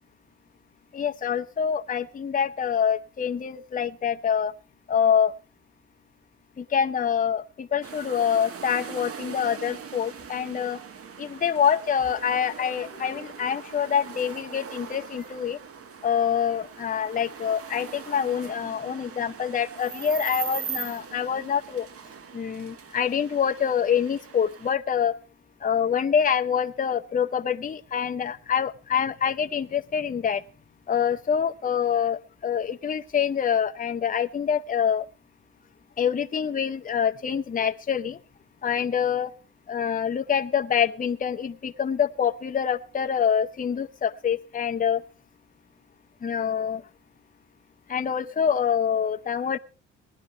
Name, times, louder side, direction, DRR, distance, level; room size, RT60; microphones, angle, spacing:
voice 1, 0.9-4.5 4.9-5.3 6.6-10.8 11.2-15.6 16.0-21.9 22.3-25.2 25.6-30.4 30.9-35.1 36.0-38.2 38.6-39.3 39.7-45.0 46.2-46.8 47.9-49.6, left 8 dB, 25° left, 7 dB, 0.7 m, -26 dB
sound 1, 7.8-24.7, right 7 dB, 50° right, 1.2 m, -40 dB
19.0 x 11.0 x 3.2 m, 0.34 s
cardioid pair, 90°, 30 cm